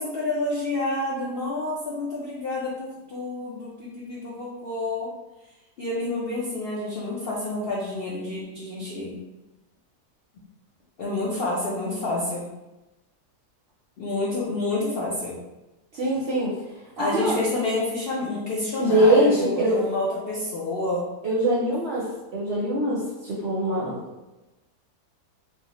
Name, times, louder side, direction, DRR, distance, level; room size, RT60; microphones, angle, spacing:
voice 1, 0.0-5.1 5.8-9.2 11.0-12.5 14.0-15.4 17.0-21.0, left 2 dB, 75° left, -5 dB, 0.5 m, -29 dB
voice 2, 15.9-16.6 17.0-17.4 18.8-19.8 21.2-24.0, right 1 dB, 60° right, -6 dB, 0.7 m, -23 dB
3.1 x 2.7 x 2.8 m, 1.0 s
omnidirectional pair, 1.7 m